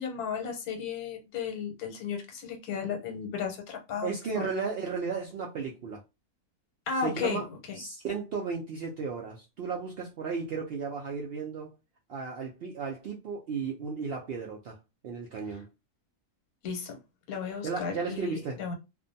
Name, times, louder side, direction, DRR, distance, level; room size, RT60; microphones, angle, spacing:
voice 1, 0.0-4.1 4.3-4.5 6.9-7.8 15.5-15.6 16.6-17.0 17.3-18.7, left 6 dB, 80° left, 1.2 m, -34 dB
voice 2, 4.0-6.0 7.0-7.5 7.8-11.7 12.1-14.8 15.0-15.7 17.6-18.6, right 5 dB, 85° right, 0.5 m, -34 dB
2.5 x 2.2 x 2.6 m
omnidirectional pair, 1.6 m